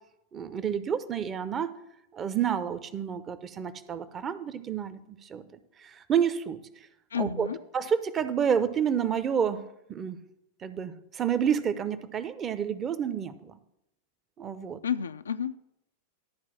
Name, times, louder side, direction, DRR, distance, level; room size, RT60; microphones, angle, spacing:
voice 1, 0.3-1.7 2.1-5.4 5.8-6.6 7.2-7.5 7.7-9.6 9.9-10.2 10.6-13.6 14.4-14.8, right 8 dB, 25° right, 13 dB, 0.7 m, -29 dB
voice 2, 7.1-7.6 14.8-15.6, left 8 dB, 70° left, 12 dB, 0.4 m, -31 dB
12.0 x 4.7 x 7.1 m, 0.81 s
figure-of-eight pair, 90°, 0 cm